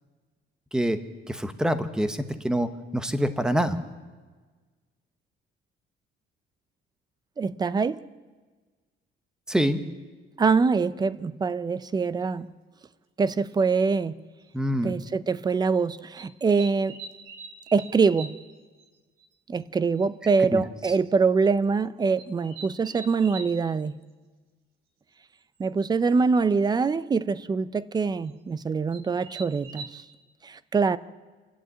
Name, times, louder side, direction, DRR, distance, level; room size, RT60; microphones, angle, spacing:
voice 1, 1.3-3.8 9.5-9.8 14.5-14.9 20.5-20.6, equal, 5° right, 9 dB, 1.0 m, -25 dB
voice 2, 7.4-8.0 10.4-12.5 13.2-14.1 14.8-17.0 17.7-18.4 19.5-24.0 25.6-30.0 30.4-31.0, right 4 dB, 20° right, 16 dB, 0.5 m, -24 dB
sound 1, 12.2-12.3 13.7-13.8 14.5-14.7 16.2-18.5 18.8-18.9 19.2-19.3 19.6-19.7 20.0-20.1 20.9-21.1 22.2-23.5 25.6-25.7 26.0-26.4 28.3-28.4 28.9-29.9, right 4 dB, 80° right, 2.6 m, -43 dB
28.0 x 11.0 x 8.7 m, 1.4 s
cardioid pair, 155°, 20 cm